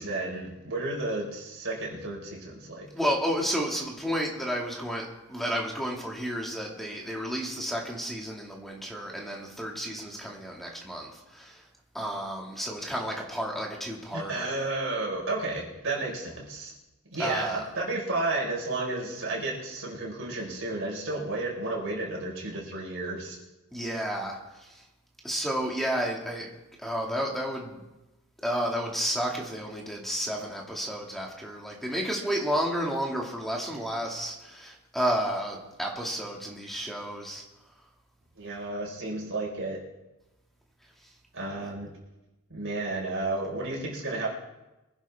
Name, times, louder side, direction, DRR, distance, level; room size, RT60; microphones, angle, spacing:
voice 1, 0.0-2.9 14.1-16.7 17.1-23.4 38.4-39.8 41.3-41.9 42.5-44.3, right 2 dB, 60° right, -3 dB, 5.1 m, -32 dB
voice 2, 2.9-11.6 11.9-14.5 17.2-17.6 23.7-24.8 25.2-26.5 26.8-27.8 28.4-37.4, equal, ahead, -1 dB, 2.2 m, -31 dB
24.0 x 11.0 x 3.6 m, 1.0 s
head